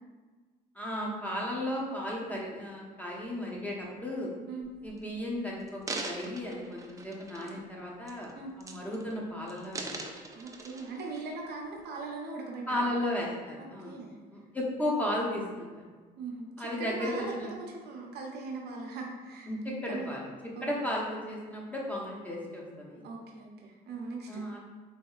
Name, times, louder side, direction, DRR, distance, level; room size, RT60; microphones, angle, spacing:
voice 1, 0.7-4.3 4.8-9.9 12.7-14.0 14.3-15.8 16.6-17.5 19.5-20.3 20.6-23.0 24.3-24.6, left 1 dB, 10° left, -3 dB, 0.8 m, -34 dB
sound 1, 4.6-5.0 5.6-7.7 8.1-8.3 8.6-9.2 9.5-11.2 11.8-11.9, right 3 dB, 20° right, 0.3 m, -41 dB
voice 2, 10.3-13.0 13.6-14.2 16.2-19.5 19.9-20.1 20.6-20.7 23.0-24.4, right 3 dB, 75° right, 0 dB, 0.7 m, -40 dB
4.1 x 2.7 x 2.4 m, 1.4 s
cardioid pair, 110°, 17 cm